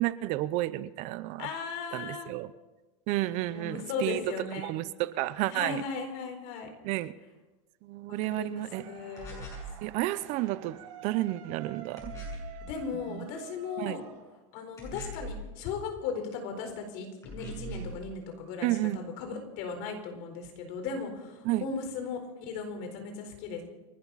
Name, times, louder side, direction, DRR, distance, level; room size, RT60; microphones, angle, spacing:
voice 1, 0.0-1.5 1.9-2.5 3.1-4.2 4.6-5.8 6.8-7.1 7.8-8.8 9.8-10.8 11.0-12.1 13.1-13.3 13.8-14.0 18.6-19.0 21.4-21.6, right 17 dB, 45° right, 16 dB, 0.7 m, -31 dB
voice 2, 1.4-2.3 3.5-4.7 5.5-6.7 8.1-9.4 12.7-14.0 14.5-23.6, left 5 dB, 55° left, 5 dB, 4.3 m, -37 dB
sound 1, 8.7-14.8, right 10 dB, 80° right, 6.9 m, -49 dB
sound 2, 9.2-9.7 12.0-12.6 14.8-15.4 17.2-18.0, right 1 dB, 20° left, 7.3 m, -40 dB
29.0 x 12.0 x 4.1 m, 1.1 s
supercardioid pair, 155°, 16 cm